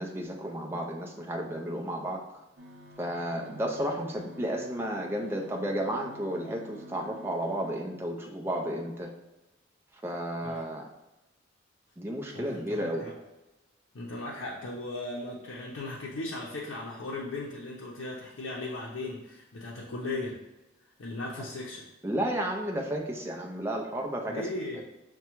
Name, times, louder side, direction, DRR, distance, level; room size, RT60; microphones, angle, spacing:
voice 1, 0.0-2.2 3.0-9.1 10.0-10.9 12.0-13.1 21.4-21.5 22.0-24.5 24.7-24.8, right 1 dB, 10° right, 0 dB, 0.4 m, -32 dB
sound 1, 2.6-7.7, left 1 dB, 65° right, 0.7 m, -50 dB
voice 2, 12.3-13.1 13.9-20.4 21.0-21.8 24.3-24.8, left 2 dB, 80° left, -4 dB, 0.6 m, -37 dB
5.8 x 2.2 x 3.0 m, 1.0 s
head